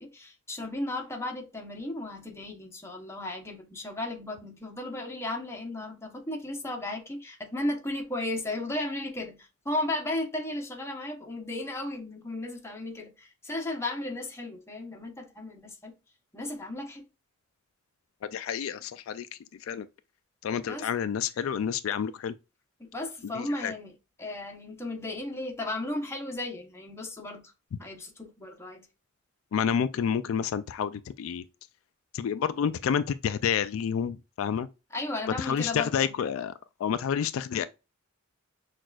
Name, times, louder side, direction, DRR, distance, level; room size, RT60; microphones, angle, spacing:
voice 1, 0.0-15.9 16.3-17.0 20.7-20.9 22.8-27.5 27.8-28.9 34.9-36.1, left 2 dB, 15° left, 0.9 m, -35 dB
voice 2, 18.2-19.3 19.6-19.9 20.4-22.3 23.3-23.7 29.5-31.4 32.1-34.7 35.4-36.5 36.8-37.7, left 7 dB, 75° left, 0.3 m, -29 dB
6.1 x 2.5 x 2.3 m
head